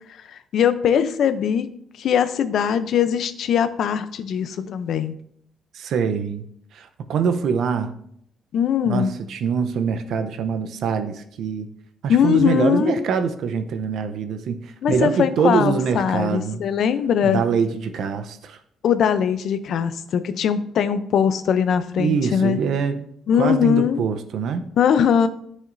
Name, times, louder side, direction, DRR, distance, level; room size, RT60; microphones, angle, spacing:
voice 1, 0.3-1.7 2.0-5.1 8.5-9.2 12.1-13.1 14.8-17.4 18.8-22.6 23.3-24.0 24.8-25.3, left 8 dB, 70° left, 12 dB, 0.5 m, -21 dB
voice 2, 5.7-6.5 6.7-7.9 8.9-11.7 12.0-16.6 17.2-18.6 22.0-23.1 23.4-24.7, right 6 dB, 70° right, 9 dB, 0.7 m, -24 dB
10.5 x 6.4 x 2.6 m, 0.70 s
cardioid pair, 90°, 0 cm